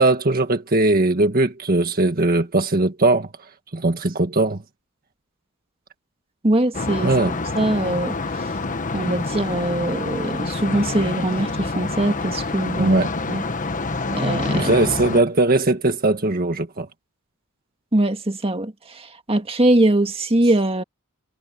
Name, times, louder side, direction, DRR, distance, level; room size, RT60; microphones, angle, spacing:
voice 1, 0.0-3.3 3.7-4.6 7.0-7.3 12.8-13.1 14.5-16.9, right 2 dB, 45° right, 1.6 m, -19 dB
voice 2, 6.4-7.1 7.6-8.5 8.9-13.0 13.3-13.4 14.1-14.7 17.9-20.8, right 1 dB, 25° right, 1.9 m, -22 dB
sound 1, 6.7-15.2, left 3 dB, 35° left, 1.3 m, -27 dB
head